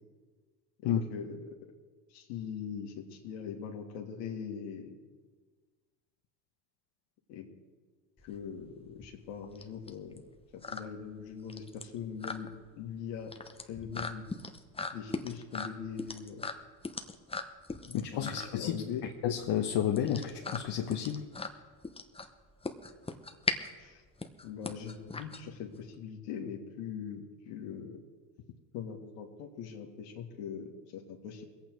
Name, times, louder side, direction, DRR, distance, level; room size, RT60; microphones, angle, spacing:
voice 1, 0.8-1.6 2.1-5.0 7.3-7.5 8.2-10.2 10.5-12.5 12.8-13.3 13.7-14.3 14.9-16.5 17.8-19.0 23.8-24.0 24.4-28.0 28.7-31.4, left 7 dB, 75° left, 1 dB, 1.9 m, -41 dB
sound 1, 8.2-25.9, left 3 dB, 10° left, 1.0 m, -40 dB
voice 2, 17.9-18.8 19.2-21.2, left 10 dB, 55° left, 2 dB, 1.2 m, -31 dB
22.0 x 8.7 x 4.6 m, 1.4 s
hypercardioid pair, 80°, 48 cm